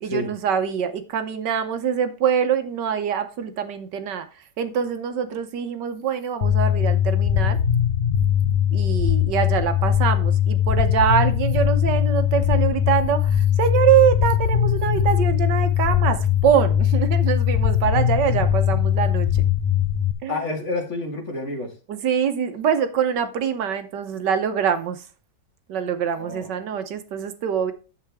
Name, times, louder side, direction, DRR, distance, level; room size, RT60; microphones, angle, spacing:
voice 1, 0.0-4.3 4.6-7.6 8.7-19.3 20.2-20.4 21.9-25.0 25.7-27.7, right 8 dB, 70° right, 9 dB, 1.4 m, -24 dB
sound 1, 6.4-20.1, left 9 dB, 85° left, 0.4 m, -20 dB
voice 2, 20.3-21.7 26.1-26.5, left 2 dB, 40° left, 3 dB, 2.0 m, -29 dB
10.0 x 7.7 x 3.5 m, 0.34 s
omnidirectional pair, 2.0 m